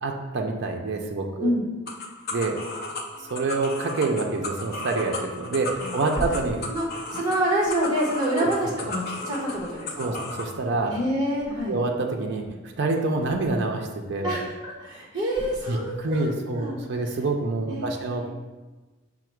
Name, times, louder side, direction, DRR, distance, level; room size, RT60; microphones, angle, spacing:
voice 1, 0.0-1.5 2.3-2.6 3.3-6.6 8.4-8.5 8.8-8.9 10.0-10.9 11.7-12.5 12.8-14.3 15.7-18.3, right 3 dB, 50° right, 2 dB, 0.4 m, -27 dB
sound 1, 1.9-10.5, left 2 dB, 45° left, 0.5 m, -35 dB
voice 2, 5.8-6.2 6.7-6.9 7.1-10.2 10.9-11.8 14.2-16.8 17.7-18.3, right 1 dB, 20° right, -4 dB, 1.0 m, -27 dB
Thump thud, 6.1-9.0 9.4-10.2 10.5-12.0 12.3-13.9 14.2-14.8 15.3-16.3 16.6-16.8, equal, 10° left, 1.3 m, -41 dB
5.7 x 2.1 x 4.5 m, 1.2 s
head